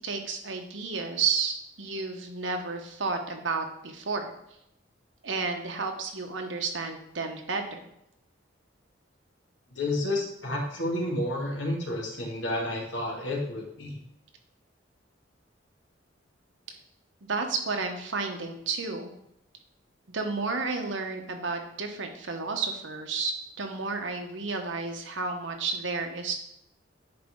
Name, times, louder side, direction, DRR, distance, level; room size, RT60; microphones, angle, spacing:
voice 1, 0.0-4.3 5.2-7.8 17.2-19.1 20.1-26.4, right 4 dB, 85° right, 4 dB, 1.1 m, -31 dB
voice 2, 9.7-14.0, left 1 dB, 80° left, -2 dB, 2.1 m, -30 dB
10.0 x 4.4 x 3.7 m, 0.77 s
head